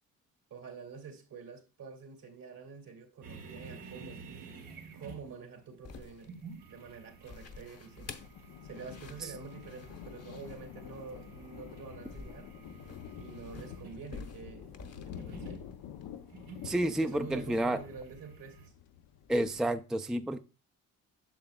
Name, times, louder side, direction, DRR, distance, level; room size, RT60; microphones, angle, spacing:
voice 1, 0.5-4.2 4.9-6.4 6.7-8.1 8.6-12.5 13.1-14.8 15.1-15.7 17.0-18.7, right 5 dB, 65° right, 2.3 m, -47 dB
sound 1, 3.2-18.7, right 4 dB, 85° right, 1.8 m, -52 dB
sound 2, 5.8-16.1, left 4 dB, 45° left, 1.0 m, -50 dB
Thunder, 7.5-19.8, left 9 dB, 80° left, 0.6 m, -48 dB
voice 2, 16.6-17.8 19.3-20.4, right 1 dB, ahead, 0.4 m, -30 dB
8.9 x 6.8 x 2.2 m
cardioid pair, 70°, 36 cm